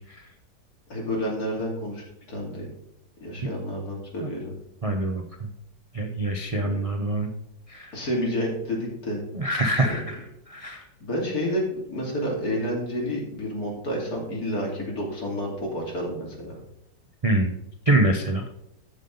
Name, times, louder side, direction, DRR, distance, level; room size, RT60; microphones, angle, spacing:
voice 1, 0.9-2.7 3.2-4.5 6.5-6.9 7.9-9.3 9.8-10.0 11.0-16.5, equal, 55° left, -2 dB, 3.2 m, -30 dB
voice 2, 4.8-5.5 5.9-7.3 7.7-8.0 9.3-10.2 10.5-10.8 17.2-17.5 17.9-18.4, right 2 dB, 45° right, 4 dB, 0.4 m, -25 dB
13.5 x 5.4 x 3.9 m, 0.83 s
omnidirectional pair, 1.9 m